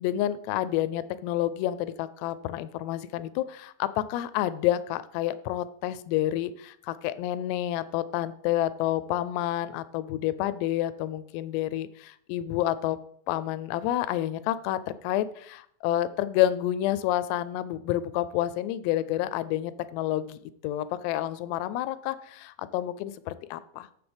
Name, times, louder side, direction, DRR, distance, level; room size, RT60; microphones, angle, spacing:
voice 1, 0.0-13.0 13.3-20.4 20.6-22.5 22.7-23.9, left 13 dB, 85° left, 15 dB, 2.7 m, -29 dB
15.0 x 5.9 x 3.5 m, 0.65 s
omnidirectional pair, 4.9 m